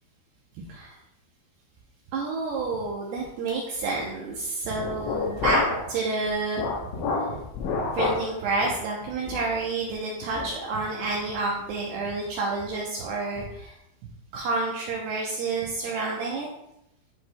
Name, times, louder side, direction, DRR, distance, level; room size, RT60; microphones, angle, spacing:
voice 1, 2.1-7.4 7.8-13.8 14.3-16.5, right 3 dB, 75° right, -2 dB, 2.4 m, -29 dB
sound 1, 4.8-5.9 6.3-8.3 8.6-8.8 9.3-9.5 9.9-10.0 10.4-10.6, left 4 dB, 80° left, 3.3 m, -28 dB
10.5 x 4.8 x 2.2 m, 0.81 s
omnidirectional pair, 5.2 m